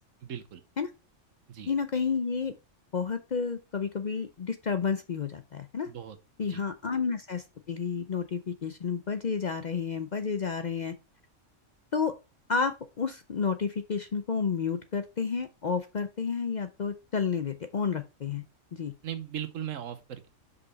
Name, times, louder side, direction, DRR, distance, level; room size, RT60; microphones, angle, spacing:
voice 1, 0.2-0.6 1.5-1.7 5.9-6.2 6.5-6.6 19.0-20.3, right 9 dB, 80° right, 1.3 m, -38 dB
voice 2, 1.7-2.5 2.9-5.9 6.4-10.9 11.9-12.1 12.5-18.4 18.7-18.9, left 5 dB, 50° left, 0.6 m, -31 dB
5.5 x 5.3 x 3.9 m
omnidirectional pair, 1.3 m